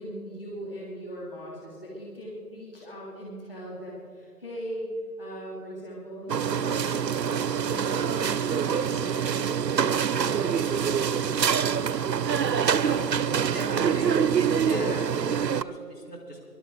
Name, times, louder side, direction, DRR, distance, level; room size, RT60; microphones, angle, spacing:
voice 1, 0.0-4.9 5.2-11.0 14.6-15.1, equal, 35° left, -5 dB, 3.1 m, -39 dB
sound 1, 6.3-15.6, right 7 dB, 90° right, 0.7 m, -25 dB
voice 2, 12.5-13.0 13.5-14.2 14.7-14.8 15.3-16.4, equal, 70° left, -2 dB, 4.6 m, -39 dB
23.0 x 12.0 x 4.0 m, 2.4 s
figure-of-eight pair, 175°, 48 cm